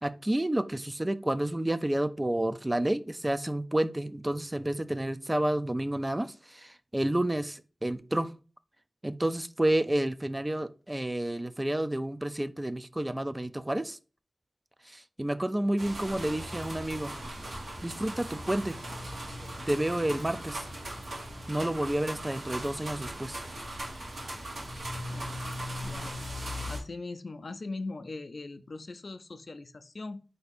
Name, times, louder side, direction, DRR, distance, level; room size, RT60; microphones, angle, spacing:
voice 1, 0.0-8.3 9.0-14.0 14.9-17.1 17.8-18.8 19.7-20.6 21.5-23.4, right 1 dB, 20° right, 11 dB, 0.4 m, -30 dB
sound 1, 15.8-26.8, equal, 90° right, 1.3 m, -38 dB
voice 2, 25.1-25.4 25.8-26.2 26.7-30.2, left 3 dB, 65° left, 10 dB, 0.4 m, -40 dB
4.4 x 2.7 x 4.0 m, 0.35 s
cardioid pair, 45°, 0 cm